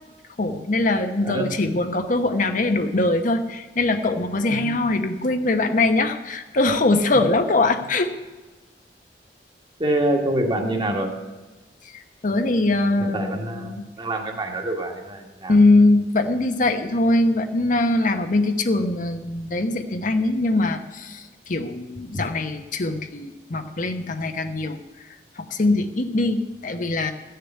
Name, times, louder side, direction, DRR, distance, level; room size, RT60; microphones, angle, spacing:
voice 1, 0.4-8.1 11.8-13.9 15.5-27.1, left 2 dB, 50° left, 7 dB, 0.9 m, -22 dB
voice 2, 1.2-1.6 4.5-4.8 9.8-11.1 13.0-15.5, right 1 dB, 30° right, 2 dB, 1.8 m, -26 dB
14.0 x 6.8 x 9.1 m, 1.2 s
head